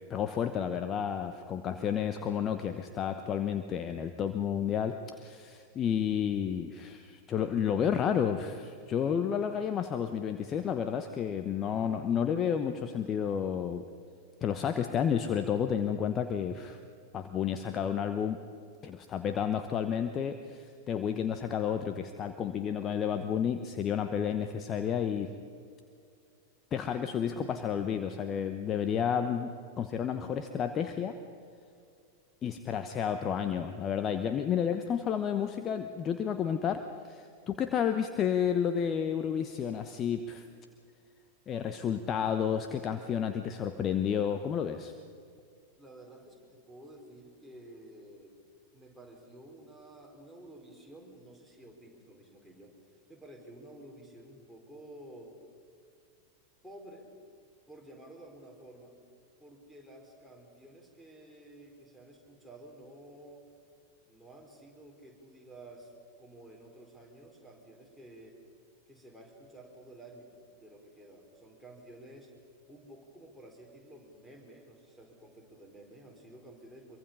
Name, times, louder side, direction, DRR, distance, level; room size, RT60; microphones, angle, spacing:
voice 1, 0.1-13.8 14.4-16.8 17.1-18.4 18.8-25.3 26.7-31.2 32.4-40.4 41.5-44.9, left 8 dB, 30° left, 8 dB, 1.0 m, -31 dB
voice 2, 45.8-48.3 48.7-55.3 56.6-57.1 57.7-59.0 59.4-63.5 64.1-65.9 66.2-68.4 68.9-72.3 72.7-77.0, right 1 dB, ahead, 1 dB, 4.4 m, -52 dB
25.0 x 23.5 x 5.5 m, 2.3 s
figure-of-eight pair, 90°, 0 cm